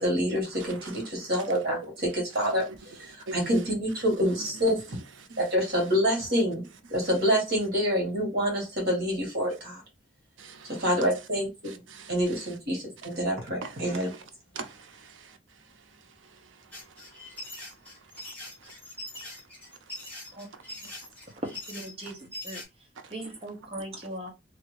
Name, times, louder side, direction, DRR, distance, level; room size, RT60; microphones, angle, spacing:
voice 1, 0.0-5.0 5.4-6.6 6.9-9.8 10.6-11.8 12.1-14.1, equal, 50° right, 1.6 m, -27 dB
voice 2, 0.6-1.9 2.5-2.6 3.3-3.5 5.3-5.4 10.4-10.9 11.6-12.1 13.6-14.2 14.5-15.4 17.3-17.4 23.0-23.1, right 4 dB, 80° right, 0.6 m, -42 dB
sound 1, 16.7-22.6, left 2 dB, 10° left, 1.2 m, -42 dB
voice 3, 21.4-22.6 23.1-24.3, right 1 dB, 30° right, 0.8 m, -38 dB
2.8 x 2.4 x 3.1 m
head